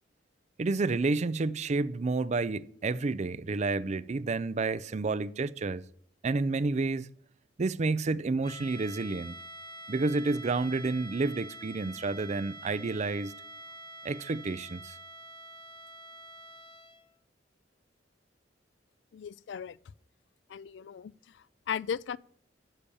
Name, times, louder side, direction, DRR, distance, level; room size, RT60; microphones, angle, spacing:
voice 1, 0.6-5.8 6.2-7.1 7.6-9.4 9.9-13.3 14.0-15.0, right 3 dB, 40° right, 0.5 m, -30 dB
sound 1, 8.4-17.1, right 1 dB, 25° left, 0.9 m, -46 dB
voice 2, 19.1-19.8 20.5-22.2, left 7 dB, 75° left, 0.3 m, -37 dB
10.0 x 6.9 x 7.1 m
head